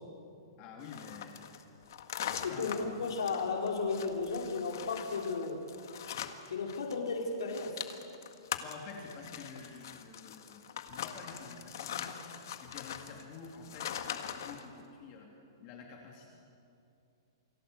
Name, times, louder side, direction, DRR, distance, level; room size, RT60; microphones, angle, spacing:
voice 1, 0.6-1.4 2.4-2.9 8.6-12.1 12.6-15.3 15.6-16.3, left 5 dB, 25° left, 0 dB, 2.9 m, -49 dB
sound 1, 0.8-7.0 7.2-14.7, left 9 dB, 50° left, 1.7 m, -42 dB
voice 2, 2.4-5.6 6.5-7.9, left 4 dB, 80° left, 0 dB, 4.6 m, -34 dB
29.0 x 23.5 x 8.1 m, 2.7 s
hypercardioid pair, 180°, 2 cm